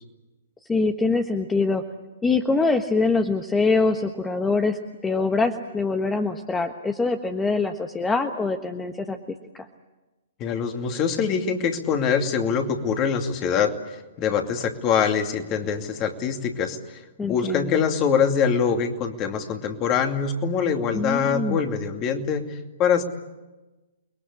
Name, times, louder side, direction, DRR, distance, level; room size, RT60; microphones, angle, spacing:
voice 1, 0.7-1.8 2.2-4.8 5.0-9.2 17.2-17.8 20.9-21.6, left 3 dB, 10° left, 6 dB, 1.4 m, -24 dB
voice 2, 10.4-23.0, left 6 dB, 30° left, 5 dB, 2.6 m, -24 dB
29.5 x 22.0 x 8.6 m, 1.1 s
figure-of-eight pair, 120°, 0 cm